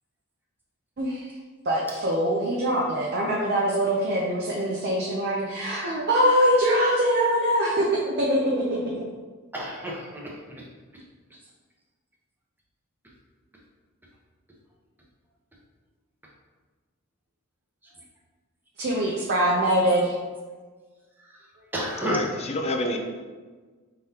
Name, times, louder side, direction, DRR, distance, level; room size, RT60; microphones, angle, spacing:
voice 1, 1.0-1.3 1.7-8.8 18.8-20.1, equal, 50° right, -3 dB, 0.6 m, -23 dB
voice 2, 9.5-10.6 21.2-22.3, equal, 10° right, -3 dB, 0.8 m, -31 dB
voice 3, 22.0-23.0, left 1 dB, 30° left, 3 dB, 0.5 m, -28 dB
4.8 x 3.8 x 2.8 m, 1.4 s
head